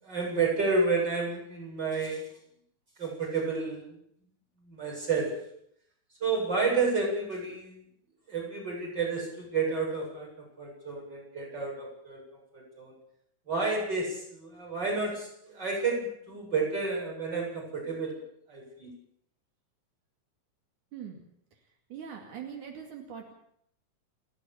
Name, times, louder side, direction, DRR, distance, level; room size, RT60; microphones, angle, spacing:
voice 1, 0.0-2.3 3.0-4.0 4.6-5.3 6.2-7.8 8.3-10.3 10.6-12.2 12.5-12.9 13.5-18.2 18.5-18.9, right 4 dB, 35° right, -1 dB, 8.5 m, -30 dB
voice 2, 20.9-21.2 21.9-23.3, right 8 dB, 85° right, 3 dB, 3.8 m, -42 dB
30.0 x 10.0 x 8.6 m, 0.71 s
omnidirectional pair, 3.4 m